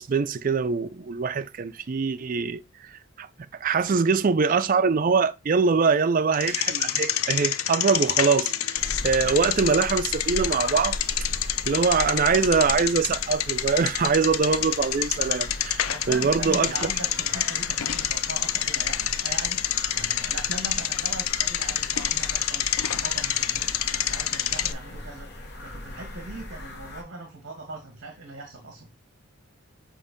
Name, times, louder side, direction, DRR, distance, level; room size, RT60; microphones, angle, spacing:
voice 1, 0.0-3.3 3.6-11.0 11.7-16.7, right 5 dB, 40° right, 0.4 m, -23 dB
Bicycle, 6.3-24.7, left 11 dB, 85° left, 0.5 m, -27 dB
sound 1, 8.7-27.0, left 1 dB, 50° left, 1.2 m, -38 dB
voice 2, 15.9-19.6 19.9-28.9, right 2 dB, 55° right, 1.5 m, -40 dB
7.4 x 2.6 x 5.1 m
head